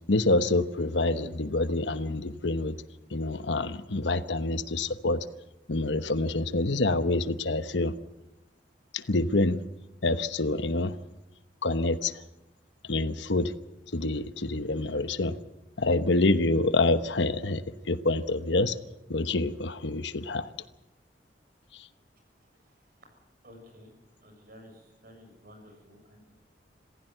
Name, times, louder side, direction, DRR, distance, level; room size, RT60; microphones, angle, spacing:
voice 1, 0.1-2.8 3.1-5.2 5.7-7.9 8.9-9.6 10.0-10.9 11.6-12.1 12.9-13.5 13.9-15.4 15.8-18.8 19.1-20.5, left 2 dB, 75° left, 12 dB, 1.1 m, -27 dB
voice 2, 23.4-23.9 24.2-26.3, equal, 50° right, 4 dB, 7.3 m, -52 dB
26.5 x 15.5 x 8.0 m, 0.94 s
head